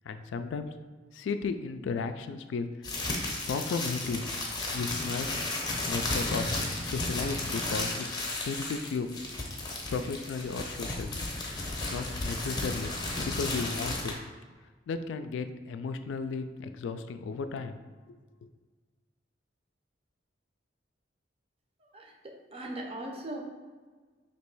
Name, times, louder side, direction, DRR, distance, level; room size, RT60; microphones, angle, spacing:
voice 1, 0.0-0.7 1.1-2.7 3.5-4.3 4.7-5.3 5.9-8.1 8.4-9.1 9.9-11.2 11.6-12.9 13.2-14.2 14.9-17.8 18.1-18.2, left 4 dB, 85° left, 9 dB, 0.3 m, -34 dB
sound 1, 2.8-14.1, left 2 dB, 20° left, 0.7 m, -33 dB
voice 2, 21.8-23.4, right 1 dB, 30° right, 1 dB, 0.6 m, -40 dB
3.0 x 2.9 x 4.6 m, 1.4 s
head